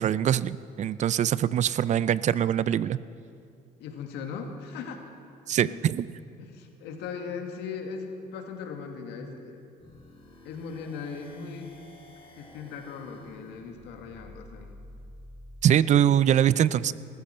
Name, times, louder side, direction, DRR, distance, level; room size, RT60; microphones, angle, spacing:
voice 1, 0.0-3.0 5.5-6.1 15.6-16.9, right 10 dB, 45° right, 18 dB, 0.4 m, -23 dB
voice 2, 3.8-5.0 5.6-5.8 6.4-9.6 10.4-11.7 12.4-14.7 15.9-16.1, left 5 dB, 85° left, 4 dB, 1.8 m, -38 dB
sound 1, 9.8-15.7, left 1 dB, 30° left, 3.0 m, -50 dB
20.0 x 14.0 x 4.4 m, 2.6 s
cardioid pair, 110°, 17 cm